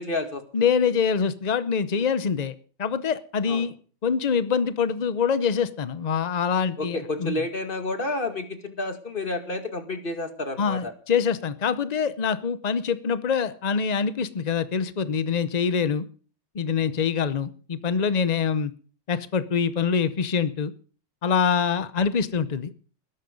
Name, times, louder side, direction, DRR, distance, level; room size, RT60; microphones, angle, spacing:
voice 1, 0.0-0.4 3.5-3.7 6.8-10.9, left 2 dB, 30° left, 7 dB, 2.3 m, -30 dB
voice 2, 0.5-2.5 2.8-3.7 4.0-7.4 10.6-16.1 16.5-18.7 19.1-20.7 21.2-22.7, left 6 dB, 65° left, 14 dB, 0.4 m, -25 dB
20.5 x 11.0 x 5.3 m, 0.41 s
omnidirectional pair, 1.9 m